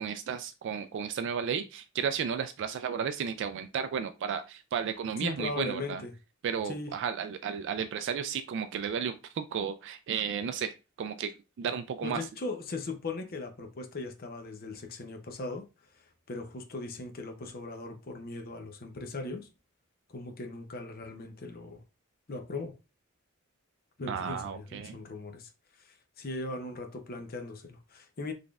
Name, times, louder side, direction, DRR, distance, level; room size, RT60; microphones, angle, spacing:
voice 1, 0.0-6.0 6.4-11.3 11.6-12.3 24.1-25.0, right 7 dB, 55° right, 0.3 m, -33 dB
voice 2, 5.2-6.1 6.7-6.9 12.0-15.7 15.9-19.5 20.1-21.8 22.3-22.7 24.0-28.3, left 2 dB, 45° left, 0.6 m, -39 dB
4.0 x 3.2 x 2.3 m
head